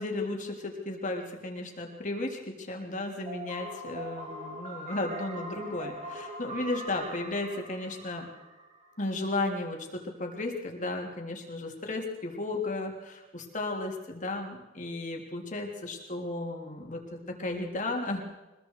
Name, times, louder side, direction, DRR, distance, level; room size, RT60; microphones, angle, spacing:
voice 1, 0.0-8.3 9.0-18.2, left 2 dB, 40° left, 1 dB, 3.5 m, -34 dB
sound 1, 3.3-9.1, right 1 dB, 35° right, 3.7 m, -42 dB
25.0 x 21.5 x 4.9 m, 1.1 s
head